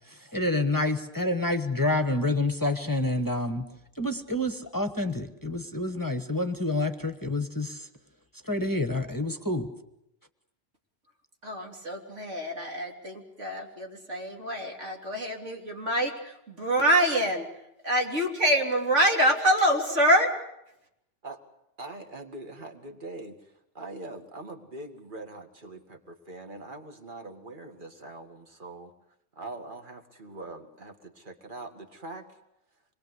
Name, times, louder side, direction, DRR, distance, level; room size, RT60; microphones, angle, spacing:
voice 1, 0.1-3.6 4.0-7.9 8.4-9.7, left 2 dB, 15° left, 8 dB, 1.3 m, -28 dB
voice 2, 11.4-17.5 17.8-20.3, right 1 dB, 85° right, 1 dB, 3.8 m, -25 dB
voice 3, 21.8-28.9 29.4-32.4, right 2 dB, 45° right, 5 dB, 2.4 m, -42 dB
26.5 x 21.5 x 8.1 m, 0.83 s
omnidirectional pair, 1.2 m